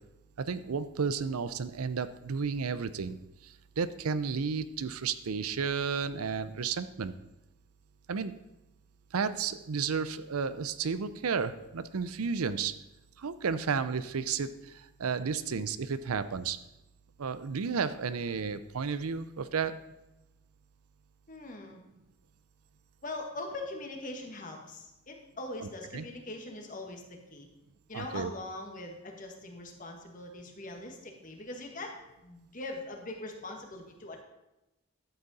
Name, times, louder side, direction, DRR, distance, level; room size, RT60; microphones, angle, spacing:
voice 1, 0.4-3.2 3.4-7.2 8.1-8.4 9.1-12.7 13.2-16.6 17.2-19.8 25.6-26.0 27.9-28.3, right 5 dB, 85° right, 13 dB, 0.6 m, -32 dB
voice 2, 21.3-21.8 23.0-27.5 27.9-31.9 32.2-34.2, left 2 dB, 40° left, 2 dB, 1.5 m, -42 dB
12.0 x 7.9 x 4.1 m, 0.95 s
head